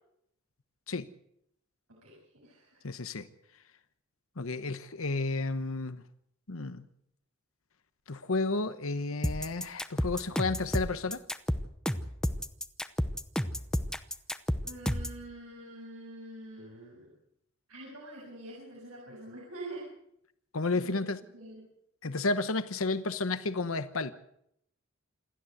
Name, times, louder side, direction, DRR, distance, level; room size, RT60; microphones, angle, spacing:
voice 1, 1.9-2.8 14.6-17.1 17.7-19.9 20.7-21.1 21.3-21.6, right 1 dB, 90° right, -3 dB, 7.2 m, -45 dB
voice 2, 2.8-3.3 4.4-6.0 6.5-6.8 8.1-11.2 20.5-21.2 22.0-24.1, left 3 dB, 70° left, 12 dB, 1.1 m, -32 dB
sound 1, 9.2-15.2, equal, 5° left, 0.8 m, -31 dB
28.0 x 13.0 x 8.0 m, 0.75 s
head